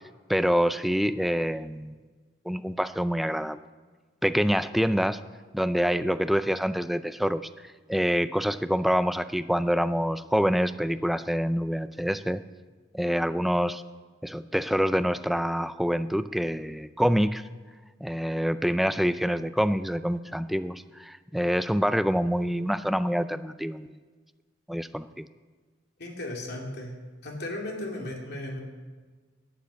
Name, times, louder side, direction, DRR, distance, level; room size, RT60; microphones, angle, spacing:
voice 1, 0.3-1.9 2.5-3.6 4.2-5.2 5.5-7.4 7.9-12.4 12.9-13.8 14.2-17.4 18.0-24.0 24.7-25.3, equal, ahead, 12 dB, 0.4 m, -26 dB
voice 2, 26.0-26.9 27.2-28.6, left 1 dB, 60° left, -1 dB, 2.9 m, -35 dB
11.5 x 9.2 x 8.2 m, 1.4 s
head